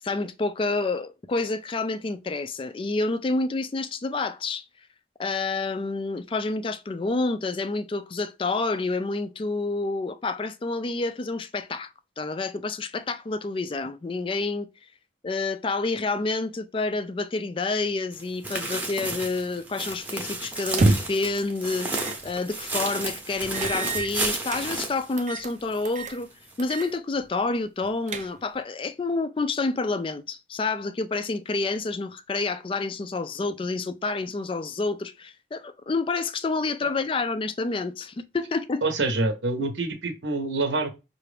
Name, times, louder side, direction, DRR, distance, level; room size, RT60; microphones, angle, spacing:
voice 1, 0.0-4.7 5.2-11.9 12.2-14.7 15.2-26.3 26.6-38.8, left 3 dB, 30° left, 0.3 m, -28 dB
sound 1, 18.1-25.8 26.1-26.2 26.7-26.8, right 2 dB, 10° right, 0.8 m, -32 dB
sound 2, 20.6-21.3 21.9-22.2 22.6-22.7 23.5-24.6 25.2-25.5 25.8-26.2 26.6-26.9 27.2-27.3 27.8-28.6, right 2 dB, 40° right, 0.5 m, -27 dB
voice 2, 38.8-40.9, right 2 dB, 75° right, 1.0 m, -26 dB
5.6 x 2.5 x 3.3 m
head